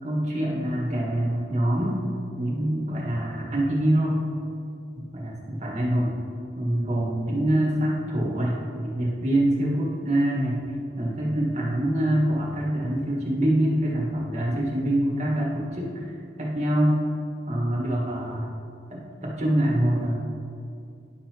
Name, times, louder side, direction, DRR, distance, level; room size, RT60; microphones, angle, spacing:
voice 1, 0.0-2.0 2.4-4.2 4.9-6.2 6.6-10.6 11.0-16.0 16.4-17.0 17.5-18.5 18.9-20.1, right 1 dB, 35° right, -5 dB, 1.8 m, -25 dB
11.0 x 5.5 x 3.1 m, 2.5 s
head